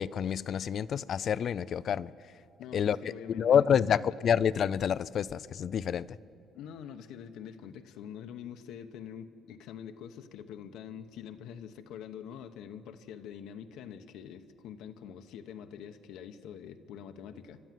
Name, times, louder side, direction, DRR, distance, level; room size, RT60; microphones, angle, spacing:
voice 1, 0.0-2.1 2.7-3.0 3.3-6.2, left 8 dB, 45° left, 18 dB, 0.4 m, -28 dB
voice 2, 2.6-4.2 6.5-17.6, left 8 dB, 85° left, 6 dB, 1.0 m, -45 dB
28.0 x 12.5 x 7.6 m, 2.8 s
cardioid pair, 150°, 0 cm